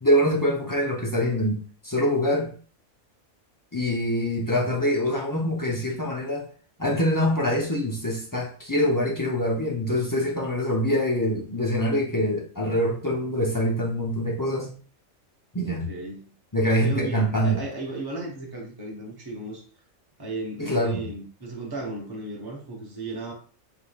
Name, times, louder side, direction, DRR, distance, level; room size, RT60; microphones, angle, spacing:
voice 1, 0.0-2.5 3.7-6.5 6.8-14.7 15.5-15.9 16.5-17.6 20.6-21.1, equal, 20° left, -3 dB, 0.6 m, -24 dB
voice 2, 15.6-16.3 16.8-19.6 20.2-23.3, right 2 dB, 20° right, -1 dB, 1.0 m, -35 dB
4.6 x 3.6 x 2.3 m, 0.41 s
omnidirectional pair, 1.4 m